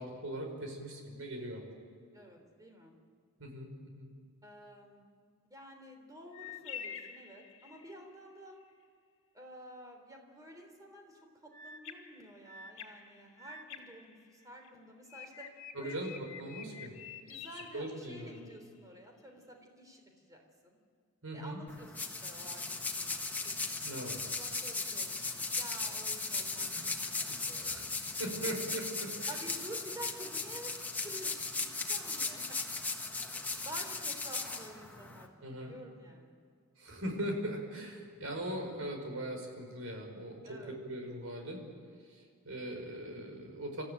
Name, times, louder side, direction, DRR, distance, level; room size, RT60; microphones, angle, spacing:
voice 1, 0.0-1.6 3.4-4.1 15.7-16.9 17.7-18.4 21.2-21.6 23.8-24.2 26.6-27.0 27.3-27.9 28.2-29.4 35.4-35.7 36.8-41.6 42.1-43.8, right 1 dB, 70° right, 2 dB, 5.1 m, -40 dB
voice 2, 2.1-2.9 4.4-5.1 5.5-8.6 9.3-15.5 15.8-16.1 17.3-20.8 21.3-27.9 29.3-32.6 33.6-36.4 40.4-40.7, right 1 dB, 15° right, 3 dB, 3.5 m, -51 dB
sound 1, 6.3-8.0 11.5-14.7 15.1-18.5, left 7 dB, 60° left, 2.1 m, -48 dB
sound 2, 21.7-35.3, left 3 dB, 10° left, 1.6 m, -37 dB
26.5 x 14.5 x 9.1 m, 2.1 s
head